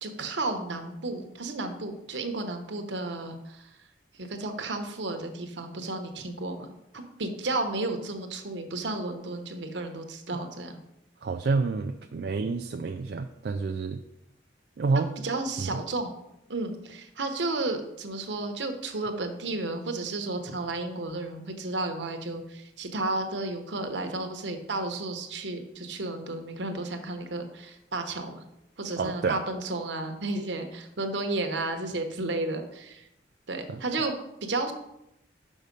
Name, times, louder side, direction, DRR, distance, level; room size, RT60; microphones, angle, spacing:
voice 1, 0.0-3.7 4.2-6.7 6.9-10.8 15.2-16.1 16.5-28.4 28.8-33.1 33.5-34.1 34.4-34.7, right 2 dB, 75° right, 5 dB, 1.0 m, -32 dB
voice 2, 11.2-14.0 14.8-15.1 15.6-15.8 29.0-29.4 33.7-33.8, right 4 dB, 60° right, 6 dB, 0.3 m, -28 dB
6.4 x 5.4 x 5.3 m, 0.85 s
head